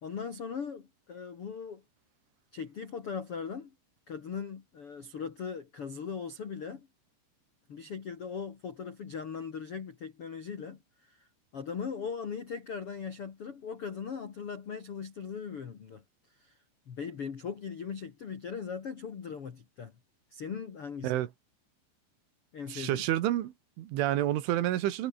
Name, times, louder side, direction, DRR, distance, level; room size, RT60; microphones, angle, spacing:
voice 1, 0.0-1.8 2.5-3.7 4.1-6.9 7.7-11.3 11.5-16.0 16.4-16.5 16.9-19.9 20.3-21.2 22.5-23.0, left 6 dB, 60° left, 1.5 m, -39 dB
voice 2, 22.7-25.1, right 13 dB, 75° right, 3.9 m, -29 dB
omnidirectional pair, 5.8 m